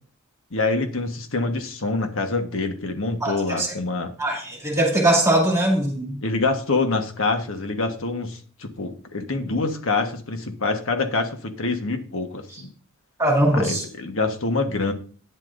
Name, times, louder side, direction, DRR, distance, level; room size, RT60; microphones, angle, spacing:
voice 1, 0.5-4.1 6.2-12.7 13.5-14.9, left 3 dB, 60° left, 6 dB, 1.3 m, -26 dB
voice 2, 3.2-3.7 4.2-6.1 13.2-13.8, right 1 dB, 15° right, -2 dB, 2.7 m, -21 dB
11.5 x 10.0 x 2.6 m, 0.42 s
head